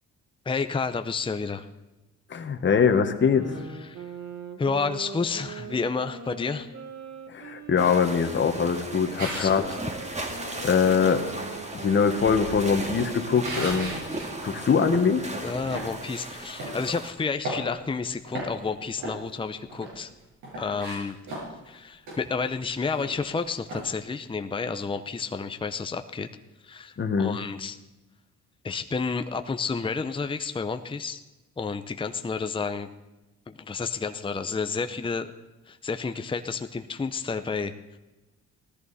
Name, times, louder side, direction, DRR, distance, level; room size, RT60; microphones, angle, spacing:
voice 1, 0.4-1.7 3.8-4.1 4.6-6.7 9.1-9.7 15.4-20.1 20.6-21.2 21.7-26.3 26.6-27.8 28.6-31.2 31.6-32.9 33.5-35.3 35.7-37.7, left 4 dB, 15° left, 8 dB, 0.7 m, -30 dB
voice 2, 2.3-3.6 7.3-9.6 10.6-11.2 11.7-13.9 14.4-15.3 27.0-27.4, left 6 dB, 40° left, 5 dB, 1.4 m, -23 dB
sound 1, 3.1-8.4 8.9-14.5, right 5 dB, 65° right, 1.8 m, -41 dB
sound 2, 7.8-17.1, right 2 dB, 20° right, 2.2 m, -37 dB
sound 3, 9.2-9.6 12.0-14.3 14.7-14.8 15.5-15.9 16.6-16.8 17.2-18.0 18.3-18.7 19.0-20.0 20.4-21.7 22.1-22.2 22.5-22.6 22.8-23.3 23.7-23.9, right 1 dB, 85° right, 6.5 m, -36 dB
17.0 x 14.0 x 4.2 m, 1.1 s
cardioid pair, 90°, 30 cm